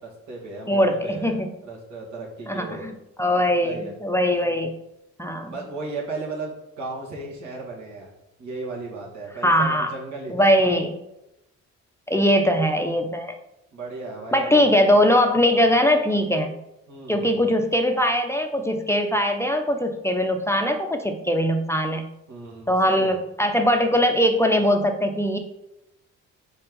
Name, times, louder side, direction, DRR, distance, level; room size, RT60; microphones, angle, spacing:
voice 1, 0.0-2.9 3.6-3.9 4.3-4.6 5.4-8.1 8.4-10.5 13.7-14.7 16.9-17.4 22.3-23.1, right 3 dB, 75° right, -3 dB, 2.2 m, -35 dB
voice 2, 0.7-1.5 2.5-2.9 3.2-4.7 5.2-5.5 9.4-9.9 10.3-10.9 12.1-13.4 14.3-16.5 17.1-22.1 22.7-25.4, equal, 10° left, 4 dB, 0.5 m, -21 dB
4.5 x 4.3 x 5.3 m, 0.89 s
cardioid pair, 90°, 30 cm